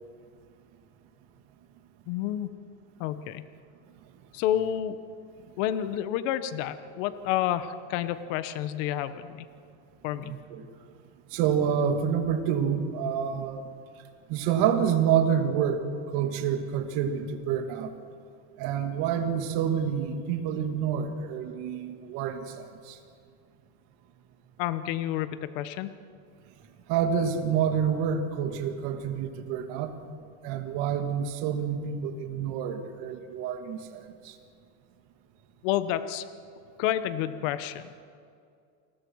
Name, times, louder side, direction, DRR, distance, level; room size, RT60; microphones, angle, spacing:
voice 1, 2.1-2.5 3.0-3.4 4.3-5.0 5.6-9.5 10.0-10.3 24.6-25.9 35.6-36.2 36.8-38.0, left 11 dB, 80° left, 12 dB, 1.2 m, -29 dB
voice 2, 10.3-10.6 11.3-13.7 14.3-15.9 16.1-17.9 18.6-23.0 26.9-29.9 30.4-34.4, right 8 dB, 70° right, 5 dB, 2.5 m, -28 dB
29.0 x 20.5 x 4.8 m, 2.3 s
cardioid pair, 130°, 38 cm